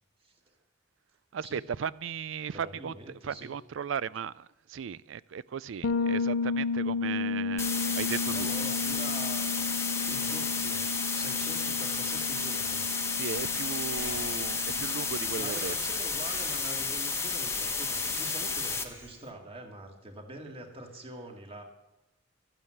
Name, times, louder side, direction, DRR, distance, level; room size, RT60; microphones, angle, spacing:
voice 1, 0.2-0.5 1.4-1.6 2.5-3.5 8.3-9.6 10.1-12.9 14.7-21.6, right 1 dB, 30° right, 2 dB, 2.1 m, -45 dB
voice 2, 1.3-2.9 3.2-8.5 13.2-15.8, right 7 dB, 80° right, 20 dB, 0.4 m, -36 dB
Bass guitar, 5.8-15.5, left 4 dB, 70° left, 0.6 m, -33 dB
sound 1, 7.6-18.8, left 4 dB, 15° left, 1.1 m, -32 dB
Breathing, 13.3-19.3, right 1 dB, 10° right, 1.7 m, -49 dB
13.0 x 8.9 x 7.8 m, 0.98 s
head